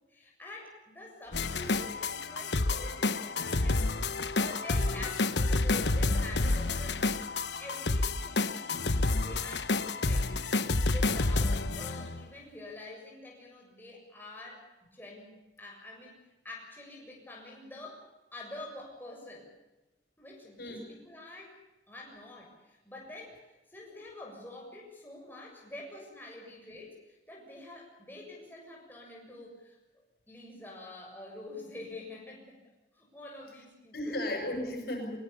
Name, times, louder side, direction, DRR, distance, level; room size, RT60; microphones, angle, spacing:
voice 1, 0.1-7.0 7.6-8.9 9.1-10.3 10.8-14.6 14.9-16.2 16.4-18.0 18.3-19.5 20.2-21.6 21.9-32.5 32.9-34.2, left 2 dB, 10° left, -2 dB, 7.2 m, -47 dB
sound 1, 1.3-12.2, left 3 dB, 80° left, 1.2 m, -29 dB
voice 2, 1.3-1.8 20.6-20.9 33.9-35.2, left 1 dB, 60° left, 3 dB, 7.6 m, -36 dB
23.5 x 23.0 x 7.0 m, 1.0 s
head